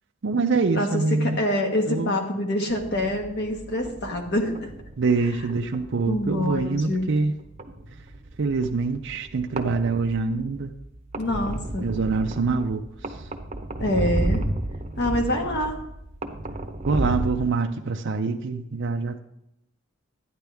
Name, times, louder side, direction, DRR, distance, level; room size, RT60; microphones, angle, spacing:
voice 1, 0.2-1.4 1.9-2.1 5.0-7.3 8.4-10.7 11.8-12.8 16.9-19.2, right 4 dB, 60° right, 4 dB, 0.5 m, -25 dB
voice 2, 0.7-4.7 6.0-7.1 11.2-11.9 13.8-14.4 15.0-15.8, left 1 dB, 55° left, 2 dB, 1.6 m, -26 dB
sound 1, 2.7-17.4, right 1 dB, 30° right, 0.8 m, -33 dB
12.0 x 9.7 x 3.5 m, 0.83 s
head